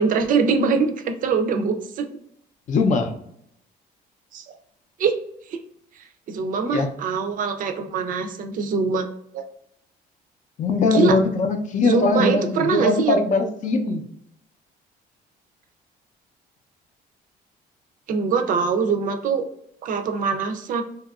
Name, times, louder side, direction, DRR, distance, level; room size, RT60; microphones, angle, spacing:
voice 1, 0.0-2.1 4.3-4.4 5.0-5.2 5.5-5.6 6.3-9.1 9.3-9.5 10.9-11.2 11.8-13.2 18.1-19.4 19.8-20.8, right 5 dB, 55° right, 6 dB, 0.4 m, -23 dB
voice 2, 2.7-3.1 6.6-6.9 10.6-14.0, left 3 dB, 45° left, 5 dB, 0.5 m, -21 dB
2.8 x 2.3 x 2.3 m, 0.73 s
cardioid pair, 110°, 17 cm